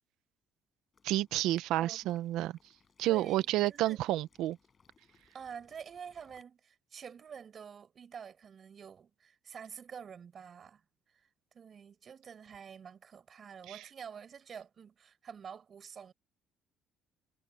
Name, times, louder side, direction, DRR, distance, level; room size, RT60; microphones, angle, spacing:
Water / Liquid, 0.9-6.4, left 5 dB, 25° left, 6.5 m, -69 dB
voice 1, 1.0-2.6 3.0-4.6 13.7-13.8, right 15 dB, 85° right, 0.7 m, -30 dB
voice 2, 1.8-2.2 3.0-4.0 5.3-10.8 11.1-11.3 11.5-16.1, right 7 dB, 35° right, 6.4 m, -48 dB
cardioid pair, 160°, 0 cm